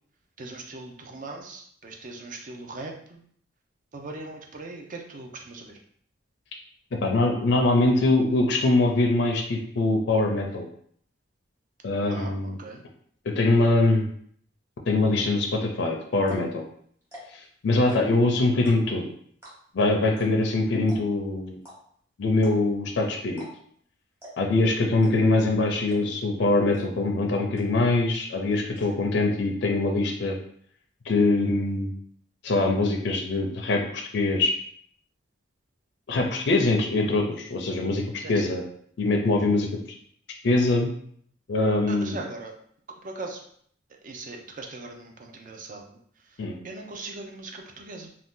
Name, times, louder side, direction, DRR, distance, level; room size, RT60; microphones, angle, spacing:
voice 1, 0.4-3.2 3.9-5.8 12.1-12.8 38.2-38.5 41.9-42.6 43.0-43.4 44.0-48.1, right 2 dB, 40° right, 2 dB, 0.5 m, -40 dB
voice 2, 7.0-10.7 11.8-12.6 13.3-14.0 14.9-16.6 17.6-19.1 19.7-21.6 22.2-23.5 24.4-30.4 31.1-31.9 32.4-34.5 36.1-38.0 38.3-38.6 39.0-39.7 40.4-40.9 41.5-42.2 46.4-46.6, left 2 dB, 60° left, 1 dB, 0.4 m, -23 dB
sound 1, 15.7-15.8 16.2-16.5 17.0-17.4 17.8-18.2 18.6-19.0 19.4-19.8 20.2-20.3 20.5-20.6 20.9-21.2 21.6-21.8 22.4-22.8 23.3-23.8 24.2-24.5 25.0-25.4 25.9-26.2 26.7-26.8 27.2-27.3 27.6-28.0 28.3-28.9, equal, 15° right, 1.1 m, -45 dB
2.6 x 2.3 x 3.5 m, 0.62 s
head